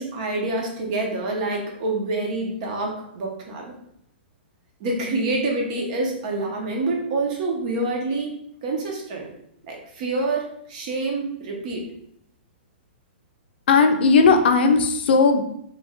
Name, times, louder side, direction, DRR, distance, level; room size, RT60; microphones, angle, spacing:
voice 1, 0.0-3.7 4.8-8.3 8.6-9.3 9.6-11.9, right 2 dB, 40° right, 0 dB, 0.9 m, -27 dB
voice 2, 13.7-15.4, left 4 dB, 65° left, 6 dB, 0.5 m, -16 dB
3.1 x 2.4 x 3.6 m, 0.73 s
hypercardioid pair, 155°, 6 cm